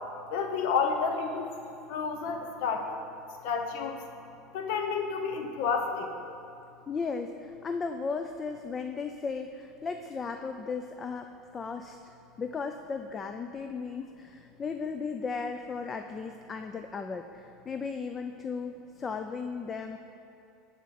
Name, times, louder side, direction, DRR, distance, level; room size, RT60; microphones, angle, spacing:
voice 1, 0.3-1.5 1.9-2.9 3.4-4.0 4.5-6.1, left 5 dB, 70° left, 4 dB, 0.8 m, -30 dB
voice 2, 6.9-12.1 12.4-20.0, left 5 dB, 20° left, 6 dB, 0.4 m, -36 dB
11.0 x 4.3 x 7.4 m, 2.6 s
supercardioid pair, 145°, 0 cm